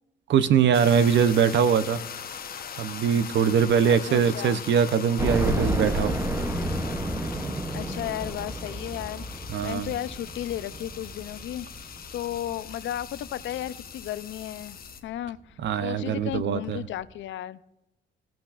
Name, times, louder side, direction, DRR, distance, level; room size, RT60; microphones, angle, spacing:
voice 1, 0.3-2.0 2.8-6.2 9.5-9.9 15.6-16.8, right 7 dB, 65° right, 14 dB, 0.7 m, -22 dB
sound 1, 0.7-15.0, left 7 dB, 50° left, 1.0 m, -41 dB
voice 2, 3.9-4.6 7.7-17.6, left 12 dB, 70° left, 16 dB, 0.5 m, -34 dB
sound 2, 5.2-14.1 14.6-14.7 15.0-15.1 16.3-16.4 16.7-16.8, right 1 dB, 10° right, 0.7 m, -31 dB
17.0 x 6.0 x 2.5 m, 0.95 s
cardioid pair, 90°, 20 cm